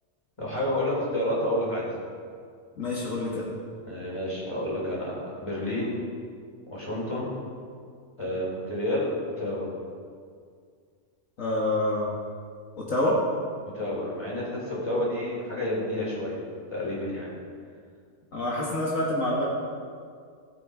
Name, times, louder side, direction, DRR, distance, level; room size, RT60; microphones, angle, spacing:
voice 1, 0.4-1.9 3.9-6.0 6.7-7.4 8.2-9.7 13.7-16.4 16.7-17.4, left 1 dB, 20° left, -5 dB, 4.2 m, -30 dB
voice 2, 2.8-3.5 11.4-12.1 12.8-13.2 18.3-19.4, left 1 dB, 70° left, -5 dB, 2.2 m, -27 dB
18.0 x 8.4 x 5.0 m, 2.2 s
omnidirectional pair, 1.5 m